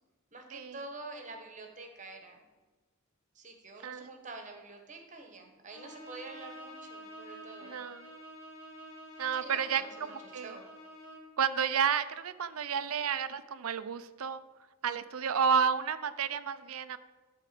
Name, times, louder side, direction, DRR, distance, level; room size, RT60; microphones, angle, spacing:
voice 1, 0.3-2.4 3.3-7.8 9.4-10.7, right 3 dB, 35° right, 4 dB, 1.4 m, -47 dB
Bowed string instrument, 5.7-11.4, equal, 65° left, 1.9 m, -49 dB
voice 2, 7.6-8.1 9.2-9.8 10.1-10.6 11.4-14.4 14.8-17.0, right 7 dB, 80° right, 13 dB, 0.6 m, -31 dB
12.0 x 4.6 x 7.7 m, 1.3 s
head